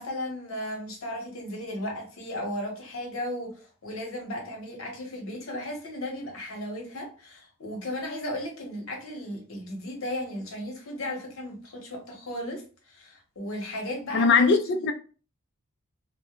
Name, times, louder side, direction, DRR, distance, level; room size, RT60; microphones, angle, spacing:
voice 1, 0.0-14.6, left 1 dB, 70° left, 0.9 m, -35 dB
voice 2, 14.1-14.9, left 4 dB, 50° left, 0.4 m, -20 dB
2.1 x 2.1 x 2.9 m
head